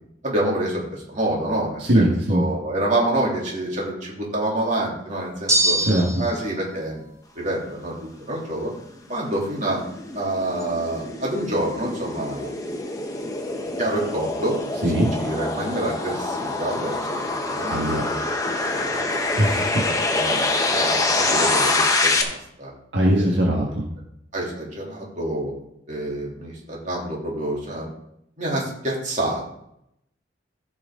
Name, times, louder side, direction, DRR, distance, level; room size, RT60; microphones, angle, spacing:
voice 1, 0.2-5.8 6.2-7.1 7.3-8.0 8.3-8.7 9.1-9.8 10.1-12.5 13.8-14.6 14.9-17.7 18.7-19.0 19.7-19.8 20.1-22.7 23.2-23.5 24.3-25.5 25.9-27.9 28.4-29.5, right 1 dB, 40° right, -3 dB, 3.0 m, -27 dB
voice 2, 1.8-2.4 5.8-6.1 14.8-15.1 17.7-18.0 19.4-19.8 22.9-23.8, right 1 dB, 70° right, -2 dB, 1.6 m, -20 dB
sound 1, 5.5-6.5, right 1 dB, 15° right, 1.9 m, -22 dB
sound 2, 9.0-22.2, left 2 dB, 20° left, 1.1 m, -25 dB
14.5 x 6.2 x 3.8 m, 0.77 s
head